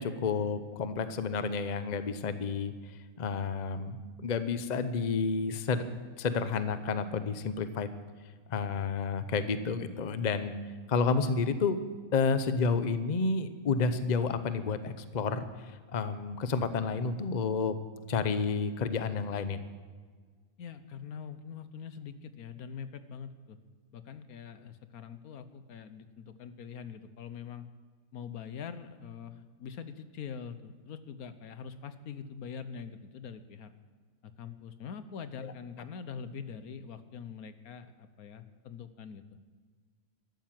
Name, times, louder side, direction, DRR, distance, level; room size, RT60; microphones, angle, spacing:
voice 1, 0.0-2.7 3.2-5.9 6.2-7.9 8.5-10.6 10.9-11.8 12.1-17.7 18.1-19.6 35.4-35.5, left 5 dB, 35° left, 11 dB, 0.8 m, -30 dB
voice 2, 20.6-23.6 23.9-27.7 28.1-33.7 34.2-39.2, left 6 dB, 80° left, 11 dB, 1.4 m, -44 dB
13.0 x 12.5 x 7.6 m, 1.5 s
omnidirectional pair, 1.5 m